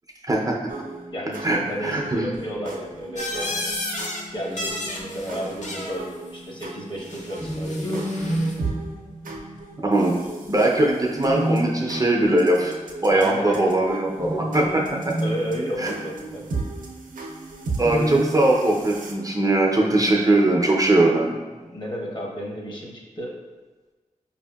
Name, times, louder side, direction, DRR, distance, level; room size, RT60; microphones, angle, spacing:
voice 1, 0.3-0.6 1.4-2.2 9.8-10.2 10.5-12.7 13.0-15.1 15.8-15.9 17.8-21.4, right 2 dB, 25° right, -1 dB, 0.5 m, -20 dB
sound 1, 0.7-19.1, right 3 dB, 80° right, 0.5 m, -36 dB
voice 2, 1.1-3.7 4.3-8.0 13.1-13.7 15.2-16.4 21.6-23.3, equal, 35° left, -2 dB, 0.9 m, -32 dB
sound 2, 3.2-4.2 4.5-6.0 7.0-8.6, left 1 dB, 60° left, 0.6 m, -32 dB
sound 3, 7.3-9.6 11.2-12.4 14.1-16.4 17.8-18.9, right 1 dB, 80° left, 1.3 m, -29 dB
4.7 x 2.6 x 2.2 m, 1.3 s
cardioid pair, 55°, 14 cm